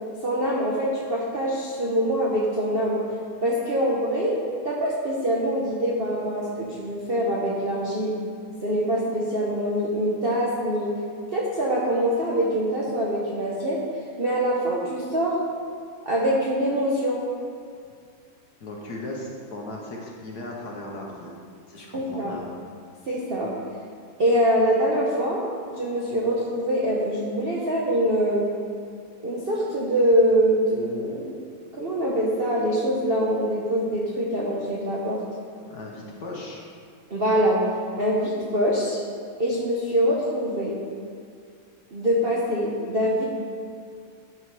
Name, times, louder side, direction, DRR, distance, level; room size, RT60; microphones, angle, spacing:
voice 1, 0.2-3.0 3.4-4.4 4.6-8.2 8.6-10.9 11.3-13.8 14.2-15.4 16.0-17.2 21.9-22.4 23.1-23.5 24.2-25.4 25.7-28.6 29.2-31.3 31.7-35.2 37.1-37.6 38.0-39.0 39.4-40.8 41.9-43.2, equal, 50° right, -5 dB, 0.7 m, -24 dB
voice 2, 18.6-22.5 35.7-36.6, left 2 dB, 55° left, -2 dB, 1.4 m, -37 dB
11.0 x 4.6 x 4.8 m, 2.2 s
omnidirectional pair, 2.3 m